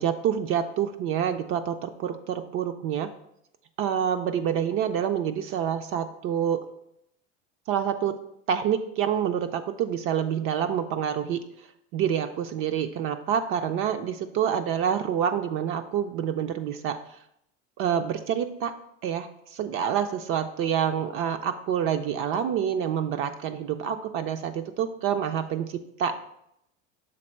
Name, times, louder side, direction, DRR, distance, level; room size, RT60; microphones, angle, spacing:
voice 1, 0.0-3.1 3.8-6.6 7.7-8.1 8.5-11.4 11.9-17.0 17.8-18.7 19.0-26.2, right 8 dB, 40° right, 8 dB, 0.4 m, -27 dB
6.4 x 3.5 x 4.4 m, 0.77 s
supercardioid pair, 125°, 35 cm